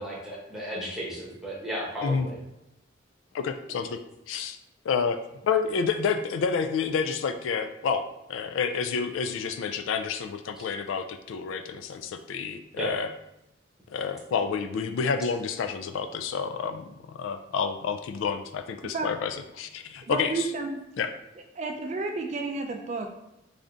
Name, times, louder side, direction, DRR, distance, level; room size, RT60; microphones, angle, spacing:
voice 1, 0.0-2.3 12.8-12.9, equal, 5° right, -5 dB, 0.9 m, -34 dB
voice 2, 3.3-4.0 4.3-4.6 4.8-8.0 8.3-13.1 13.9-20.5 21.0-21.1, left 6 dB, 80° left, 8 dB, 0.3 m, -29 dB
voice 3, 20.1-20.8 21.6-23.1, right 3 dB, 35° right, 4 dB, 0.3 m, -31 dB
3.4 x 2.5 x 3.8 m, 0.86 s
head